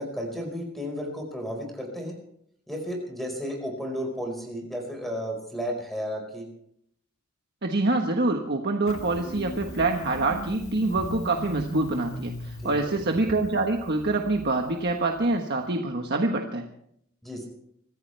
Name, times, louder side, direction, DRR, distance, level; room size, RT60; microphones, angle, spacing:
voice 1, 0.0-2.2 2.7-6.5 12.6-13.0 17.2-17.5, equal, ahead, 2 dB, 5.0 m, -33 dB
voice 2, 7.6-16.6, right 2 dB, 50° right, 2 dB, 1.4 m, -26 dB
Engine starting, 8.9-15.3, left 1 dB, 75° left, 1.9 m, -38 dB
25.5 x 14.5 x 3.4 m, 0.70 s
head